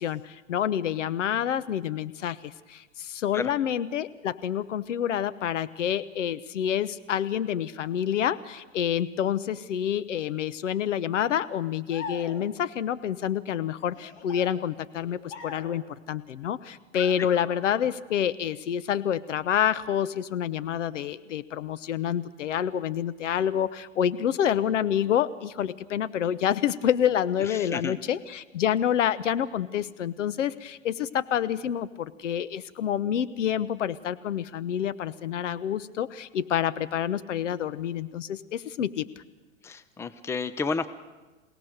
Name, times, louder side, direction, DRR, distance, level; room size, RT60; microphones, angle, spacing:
voice 1, 0.0-39.1, left 9 dB, 70° left, 14 dB, 1.0 m, -28 dB
sound 1, 11.9-12.7 13.9-15.9 16.9-18.0, left 6 dB, 50° left, 3.0 m, -42 dB
voice 2, 27.4-28.0 39.6-40.9, left 4 dB, 5° left, 13 dB, 0.6 m, -31 dB
27.5 x 17.5 x 6.6 m, 1.2 s
hypercardioid pair, 105°, 39 cm